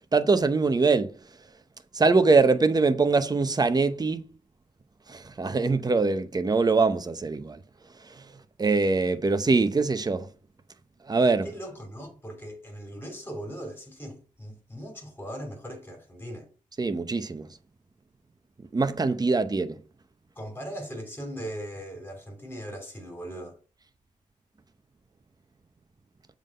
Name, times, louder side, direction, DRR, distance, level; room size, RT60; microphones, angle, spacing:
voice 1, 0.1-1.1 1.9-4.3 5.1-7.6 8.0-8.2 8.6-10.3 11.1-11.5 16.8-17.5 18.7-19.8, right 3 dB, 30° right, 0.7 m, -23 dB
voice 2, 11.4-16.5 20.3-23.6, equal, 15° left, 3.1 m, -39 dB
7.2 x 3.9 x 5.4 m
wide cardioid pair, 105°, 14 cm